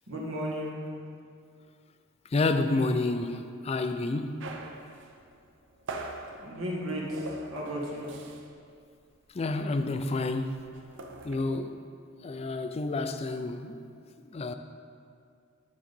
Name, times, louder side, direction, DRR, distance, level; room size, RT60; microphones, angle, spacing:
voice 1, 0.1-0.8 6.4-8.1, equal, 80° right, -3 dB, 1.5 m, -34 dB
voice 2, 2.3-4.5 9.3-10.5 11.2-11.7 12.2-13.9 14.3-14.5, left 2 dB, 30° left, 8 dB, 0.4 m, -29 dB
sound 1, 4.4-8.7 8.9-9.2 9.4-11.4, right 2 dB, 65° right, 0.6 m, -42 dB
9.8 x 3.8 x 5.3 m, 2.3 s
head